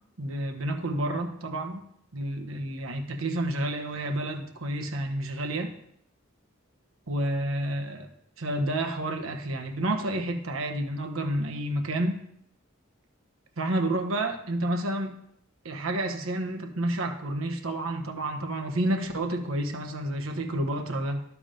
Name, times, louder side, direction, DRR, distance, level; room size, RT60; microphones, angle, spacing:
voice 1, 0.2-1.8 2.1-5.7 7.1-8.1 8.4-12.2 13.6-15.2 15.6-21.2, right 1 dB, 80° right, 5 dB, 1.1 m, -30 dB
11.5 x 4.8 x 5.1 m, 0.70 s
head